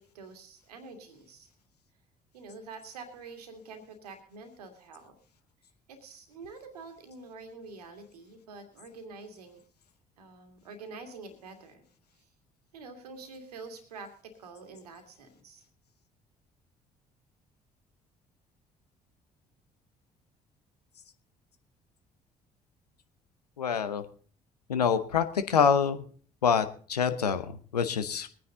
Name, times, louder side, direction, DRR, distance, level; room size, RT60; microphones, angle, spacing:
voice 1, 0.0-1.5 2.3-5.1 5.9-9.6 10.2-11.8 12.7-15.6, right 4 dB, 80° right, 7 dB, 2.1 m, -47 dB
voice 2, 23.6-24.0 24.7-26.0 26.4-28.3, left 7 dB, 80° left, 11 dB, 0.9 m, -26 dB
22.0 x 9.5 x 3.8 m, 0.44 s
figure-of-eight pair, 50°, 20 cm